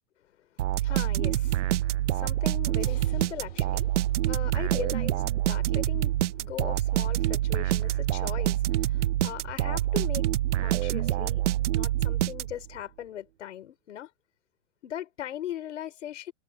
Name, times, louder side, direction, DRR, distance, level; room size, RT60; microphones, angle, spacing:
sound 1, 0.6-12.8, right 14 dB, 75° right, 0.8 m, -26 dB
voice 1, 0.8-3.9 4.2-10.3 10.6-11.4 11.7-14.1 14.8-16.3, left 11 dB, 80° left, 5.8 m, -39 dB
Crash cymbal, 2.8-7.4, left 14 dB, 55° left, 6.5 m, -56 dB
supercardioid pair, 180°, 36 cm